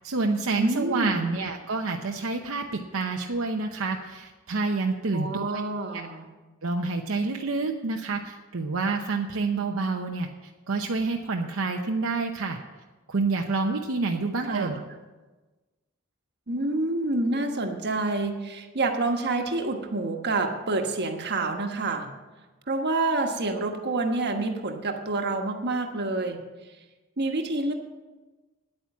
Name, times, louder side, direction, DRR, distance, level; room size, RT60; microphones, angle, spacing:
voice 1, 0.0-2.7 2.9-5.6 5.9-6.1 6.6-12.6 13.1-14.8, right 3 dB, 75° right, 2 dB, 0.8 m, -28 dB
voice 2, 0.5-1.3 5.1-6.3 14.4-14.8 16.5-22.1 22.7-26.4 27.2-27.7, right 2 dB, 55° right, 4 dB, 1.3 m, -28 dB
9.9 x 8.9 x 7.2 m, 1.2 s
head